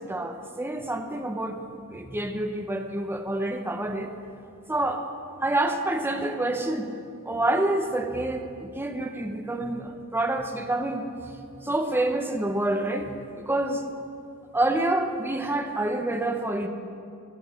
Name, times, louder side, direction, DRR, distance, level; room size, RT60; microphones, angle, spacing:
voice 1, 0.0-1.6 1.9-4.1 4.7-5.0 5.4-6.9 7.2-13.2 13.4-13.9 14.5-16.7, right 1 dB, 10° right, 5 dB, 0.7 m, -27 dB
13.5 x 7.1 x 7.4 m, 2.5 s
head